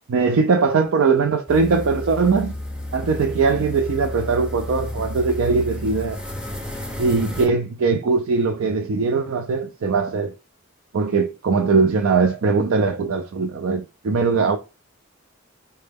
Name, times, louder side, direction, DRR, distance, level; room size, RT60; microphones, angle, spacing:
voice 1, 0.1-2.6 2.9-6.2 7.0-10.3 10.9-14.6, right 4 dB, 75° right, 0.4 m, -20 dB
sound 1, 1.5-7.5, left 1 dB, 5° right, 0.5 m, -31 dB
4.3 x 2.1 x 3.4 m
head